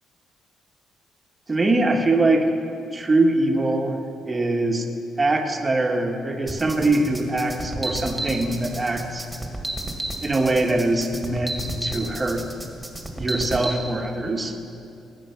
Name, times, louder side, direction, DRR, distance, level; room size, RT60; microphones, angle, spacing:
voice 1, 1.5-2.5 2.9-4.0 4.3-4.9 5.2-9.3 10.2-12.5 13.2-14.6, right 2 dB, 25° right, 2 dB, 1.5 m, -22 dB
sound 1, 6.5-13.7, right 1 dB, 10° right, 2.0 m, -32 dB
19.0 x 8.5 x 5.9 m, 2.7 s
cardioid pair, 90°, 0 cm